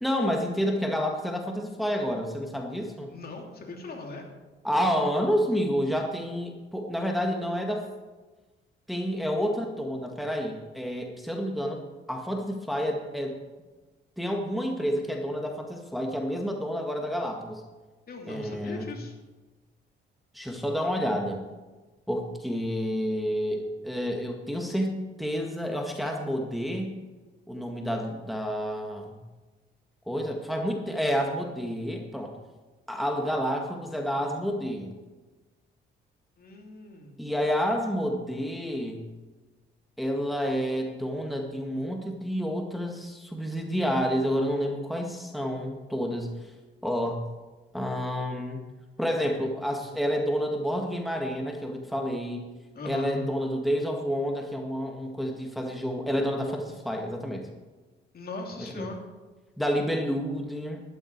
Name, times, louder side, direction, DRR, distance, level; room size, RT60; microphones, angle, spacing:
voice 1, 0.0-3.1 4.6-7.9 8.9-11.8 12.1-13.4 14.2-17.6 18.3-18.9 20.3-21.4 22.1-27.0 27.5-29.2 30.1-32.4 32.9-34.9 37.2-39.0 40.0-46.5 46.8-47.3 47.7-48.6 49.0-52.5 52.8-57.5 58.6-58.9 59.6-60.8, equal, ahead, 1 dB, 1.9 m, -29 dB
voice 2, 3.1-4.2 18.1-19.1 36.4-37.2 52.7-53.2 58.1-59.1, left 2 dB, 50° left, 1 dB, 2.9 m, -39 dB
12.5 x 12.0 x 4.7 m, 1.2 s
cardioid pair, 90°, 20 cm